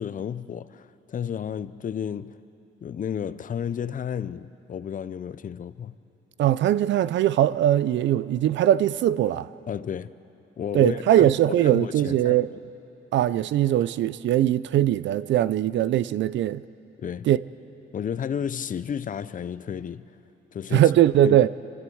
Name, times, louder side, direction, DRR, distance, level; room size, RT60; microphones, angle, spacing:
voice 1, 0.0-2.4 2.8-5.9 9.7-10.1 10.6-12.4 17.0-17.3 17.9-20.0 20.5-20.9 21.2-21.4, left 8 dB, 40° left, 0.6 m, -32 dB
voice 2, 6.4-9.5 10.7-12.5 13.1-16.6 17.3-17.4 20.7-21.5, right 12 dB, 70° right, 0.5 m, -21 dB
24.0 x 13.5 x 7.8 m
cardioid pair, 90°, 20 cm